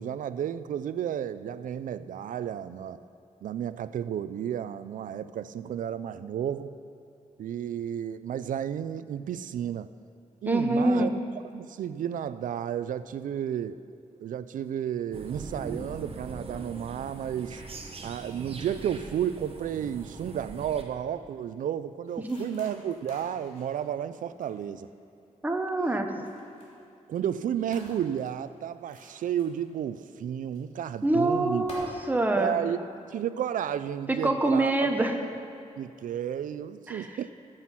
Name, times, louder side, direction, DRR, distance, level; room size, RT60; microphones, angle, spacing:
voice 1, 0.0-3.0 3.4-6.7 7.4-9.9 10.4-11.1 11.5-13.8 14.2-17.6 18.0-24.9 27.1-31.7 32.3-32.8 33.1-34.9 35.2-35.4 35.8-37.3, right 9 dB, 90° right, 14 dB, 0.4 m, -32 dB
voice 2, 10.5-11.1 22.3-22.4 25.4-26.1 31.0-32.5 34.1-35.1 36.9-37.1, right 2 dB, 15° right, 4 dB, 0.9 m, -25 dB
sound 1, 15.1-20.8, right 3 dB, 45° right, 1.1 m, -42 dB
sound 2, 22.1-25.3 25.9-26.8 27.2-27.4 27.7-30.0 30.5-30.6 31.0-31.2 31.6-31.8, left 1 dB, 55° left, 3.3 m, -52 dB
14.0 x 7.8 x 5.7 m, 2.7 s
wide cardioid pair, 135°, 13 cm